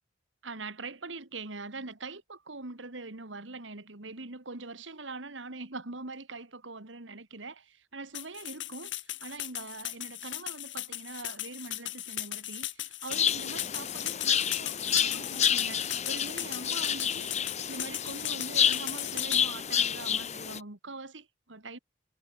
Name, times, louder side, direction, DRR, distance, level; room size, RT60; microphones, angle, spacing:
voice 1, 0.4-21.8, right 3 dB, 90° right, 2.3 m, -43 dB
sound 1, 8.1-19.4, left 14 dB, 85° left, 2.5 m, -37 dB
sound 2, 13.1-20.6, left 8 dB, 40° left, 1.3 m, -29 dB
head